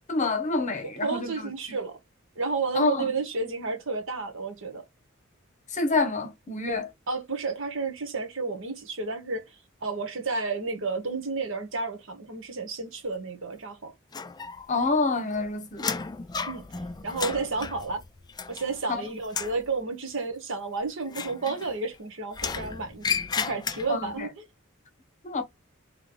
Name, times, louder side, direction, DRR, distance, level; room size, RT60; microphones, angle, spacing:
voice 1, 0.1-1.4 2.7-3.1 5.7-6.9 14.7-15.9 19.0-19.1 23.9-24.3 25.2-25.4, left 3 dB, 35° left, 1.0 m, -27 dB
voice 2, 0.8-2.0 2.3-4.8 7.1-9.4 9.8-13.9 16.5-16.6 17.0-18.0 18.5-23.1 23.4-24.3, right 4 dB, 65° right, 1.3 m, -31 dB
sound 1, 14.1-14.9 15.2-18.9 19.2-19.6 21.1-22.0 22.3-24.1, left 5 dB, 20° left, 0.3 m, -33 dB
3.3 x 3.2 x 3.8 m
head